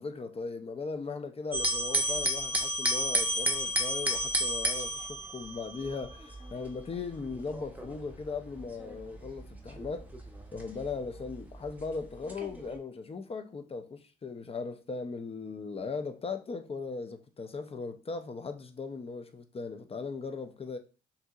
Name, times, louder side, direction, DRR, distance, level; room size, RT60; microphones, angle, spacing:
voice 1, 0.0-10.1 10.5-20.8, left 4 dB, 30° left, 0.6 m, -38 dB
sound 1, 1.5-11.7 12.3-12.8, right 1 dB, 10° right, 0.8 m, -32 dB
5.6 x 2.8 x 2.4 m
cardioid pair, 90°, 20 cm